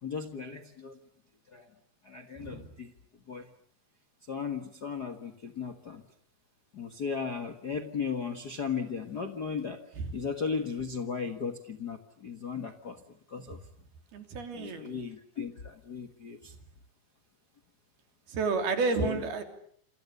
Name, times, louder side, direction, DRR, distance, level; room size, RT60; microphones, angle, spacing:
voice 1, 0.0-1.0 1.5-1.7 2.0-2.9 3.3-3.5 4.3-6.0 6.7-9.8 10.1-13.0 13.3-13.6 14.5-16.5 19.0-19.2, left 5 dB, 50° left, 7 dB, 1.1 m, -36 dB
voice 2, 14.1-14.9 18.3-19.4, right 4 dB, 80° right, 6 dB, 5.2 m, -30 dB
28.5 x 27.5 x 6.8 m, 0.62 s
omnidirectional pair, 4.3 m